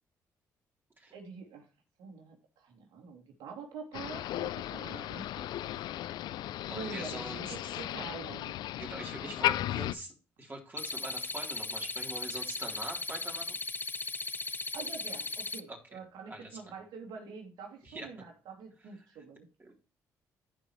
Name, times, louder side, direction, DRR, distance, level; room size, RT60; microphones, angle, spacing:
voice 1, 1.1-1.7 2.0-5.8 6.7-8.5 9.2-9.5 14.7-19.5, right 5 dB, 75° right, 2 dB, 2.9 m, -46 dB
Motor vehicle (road), 3.9-9.9, left 13 dB, 75° left, 0.4 m, -35 dB
voice 2, 6.6-7.8 8.7-13.6 15.7-16.0 16.3-16.6 17.8-18.1 19.6-19.7, right 2 dB, 30° right, 0 dB, 3.6 m, -44 dB
sound 1, 10.8-15.6, left 3 dB, 25° left, 0.7 m, -37 dB
15.5 x 5.2 x 3.2 m, 0.33 s
supercardioid pair, 60°, 7 cm